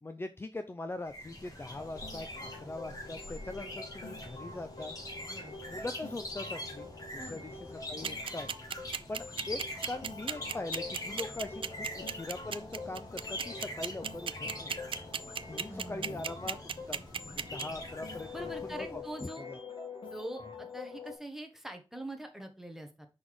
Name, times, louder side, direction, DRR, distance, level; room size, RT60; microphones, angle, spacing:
voice 1, 0.0-5.0 5.7-8.5 9.1-14.7 15.5-16.6 16.9-17.0 17.3-19.6, left 2 dB, 25° left, 8 dB, 0.5 m, -41 dB
sound 1, 1.1-19.1, left 1 dB, 40° left, 2.6 m, -44 dB
sound 2, 1.8-21.2, left 3 dB, 70° left, 1.9 m, -46 dB
voice 2, 5.3-5.7 7.2-7.4 15.7-16.3 18.3-19.5 20.1-23.1, right 1 dB, 5° right, 5 dB, 1.3 m, -44 dB
sound 3, 8.0-17.6, right 7 dB, 75° right, 0.4 m, -34 dB
5.5 x 4.0 x 4.8 m, 0.30 s
wide cardioid pair, 90°, 9 cm